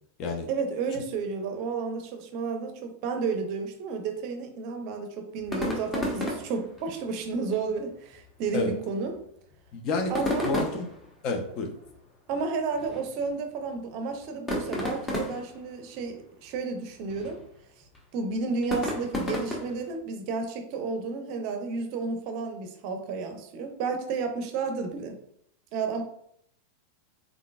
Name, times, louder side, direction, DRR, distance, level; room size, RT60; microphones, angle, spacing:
voice 1, 0.5-9.2 10.1-10.5 12.3-17.4 18.1-25.2 25.7-26.0, right 4 dB, 45° right, 6 dB, 0.6 m, -32 dB
sound 1, 5.4-20.0, left 1 dB, 15° left, 1.0 m, -35 dB
voice 2, 9.7-10.9 11.2-11.7, left 3 dB, 40° left, 3 dB, 0.7 m, -29 dB
3.8 x 3.6 x 2.3 m, 0.72 s
figure-of-eight pair, 90°, 0 cm